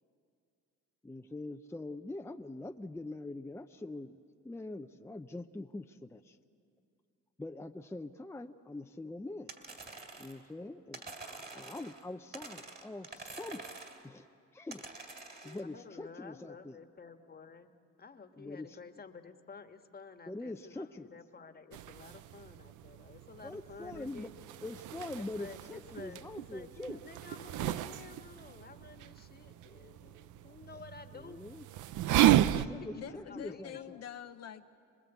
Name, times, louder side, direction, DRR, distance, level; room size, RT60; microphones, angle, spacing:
voice 1, 1.0-4.2 4.4-6.4 7.4-9.5 10.2-13.7 14.0-14.3 14.5-14.9 15.3-16.8 18.4-18.7 20.3-21.1 23.4-24.3 24.6-27.0 31.1-31.7 32.3-34.0, left 2 dB, 10° left, 6 dB, 0.6 m, -44 dB
sound 1, 9.5-10.5 10.9-12.0 12.3-14.1 14.7-15.6, right 3 dB, 35° right, 2.9 m, -47 dB
voice 2, 15.4-24.3 25.1-31.4 32.5-32.8 33.3-33.8, left 5 dB, 30° left, 7 dB, 1.5 m, -52 dB
sound 2, 21.7-32.7, right 13 dB, 80° right, 0.6 m, -33 dB
voice 3, 32.9-34.7, left 9 dB, 55° left, 7 dB, 0.7 m, -45 dB
27.0 x 20.5 x 8.2 m, 2.4 s
cardioid pair, 90°, 30 cm